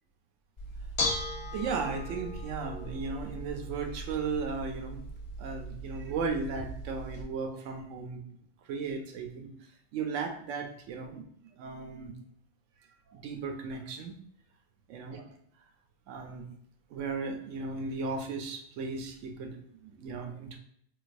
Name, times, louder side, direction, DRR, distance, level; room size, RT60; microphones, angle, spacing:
Bell / Dishes pots and pans, 0.6-7.2, left 1 dB, 50° left, 0.3 m, -38 dB
voice 1, 1.5-5.0 5.4-8.2 8.6-9.5 9.9-11.2 11.6-12.1 13.1-14.2 14.9-15.3 16.1-16.5 16.9-20.6, right 4 dB, 80° right, 4 dB, 0.9 m, -36 dB
4.0 x 2.4 x 2.4 m, 0.70 s
omnidirectional pair, 1.3 m